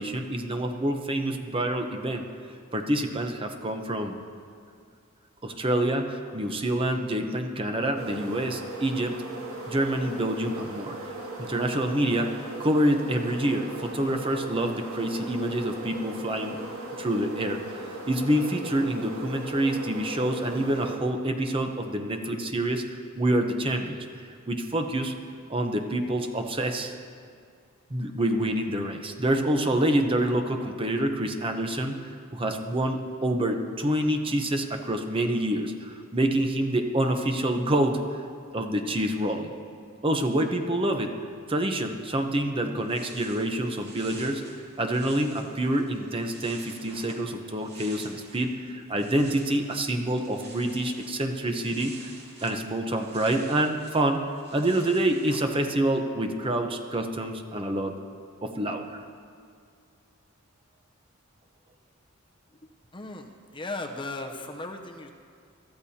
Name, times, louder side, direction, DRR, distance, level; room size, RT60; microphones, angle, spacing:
voice 1, 0.0-2.3 2.7-4.2 5.4-9.1 9.7-11.1 11.4-16.6 17.0-22.8 23.2-25.1 25.5-26.9 27.9-38.2 38.5-39.5 40.0-41.2 41.5-44.4 44.8-51.9 52.4-54.2 54.5-57.9 58.4-59.0, right 1 dB, 25° right, 4 dB, 0.8 m, -27 dB
sound 1, 8.0-21.0, right 2 dB, 70° right, 2.1 m, -38 dB
sound 2, 42.8-48.5 48.8-55.5, right 3 dB, 50° right, 2.4 m, -49 dB
voice 2, 62.9-65.1, left 2 dB, 25° left, 3 dB, 0.7 m, -36 dB
21.5 x 13.5 x 2.8 m, 2.2 s
head